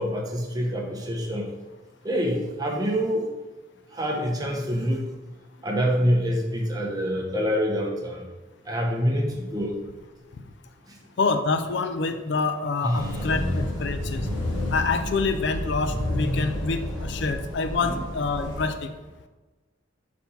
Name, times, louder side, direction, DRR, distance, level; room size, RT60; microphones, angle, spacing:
voice 1, 0.0-1.5 2.0-3.2 3.9-5.0 5.6-8.3 8.7-9.7 12.8-13.1 17.8-18.0, equal, 20° right, -1 dB, 0.9 m, -26 dB
voice 2, 11.2-14.3 14.7-18.9, left 4 dB, 60° left, 8 dB, 0.4 m, -26 dB
sound 1, 12.9-18.7, left 1 dB, 80° left, 1.3 m, -30 dB
4.3 x 4.2 x 5.4 m, 1.2 s
head